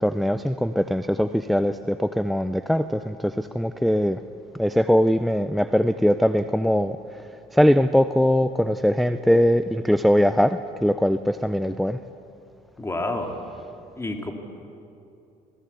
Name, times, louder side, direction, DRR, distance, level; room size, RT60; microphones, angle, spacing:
voice 1, 0.0-4.2 4.5-12.0, equal, ahead, 11 dB, 0.5 m, -21 dB
voice 2, 12.8-13.3 14.0-14.3, left 2 dB, 15° left, 3 dB, 2.8 m, -28 dB
27.5 x 18.0 x 8.4 m, 2.7 s
cardioid pair, 110°, 17 cm